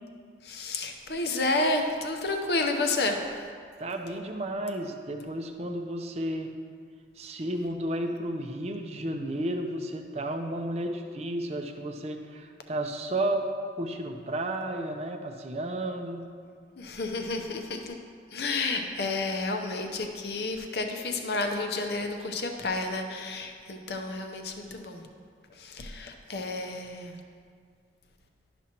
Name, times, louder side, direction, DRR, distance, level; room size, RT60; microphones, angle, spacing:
voice 1, 0.4-3.5 16.8-18.0 18.3-25.0 25.6-27.2, left 2 dB, 60° left, 4 dB, 0.7 m, -31 dB
voice 2, 3.8-6.5 7.2-13.4 13.8-16.2, right 1 dB, 35° right, 4 dB, 0.5 m, -32 dB
11.5 x 6.0 x 2.9 m, 2.1 s
head